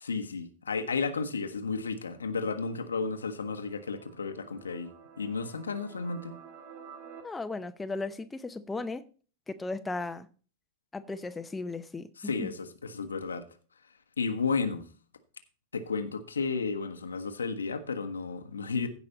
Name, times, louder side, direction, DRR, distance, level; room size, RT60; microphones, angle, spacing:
voice 1, 0.0-4.9 5.2-6.3 12.2-13.4 14.2-14.9 15.7-18.9, left 4 dB, 75° left, 1.1 m, -33 dB
sound 1, 1.7-7.2, right 6 dB, 55° right, 2.7 m, -52 dB
voice 2, 7.2-9.0 9.5-10.3 10.9-12.5, left 3 dB, 10° left, 0.7 m, -36 dB
16.0 x 5.4 x 4.2 m
figure-of-eight pair, 90°, 0 cm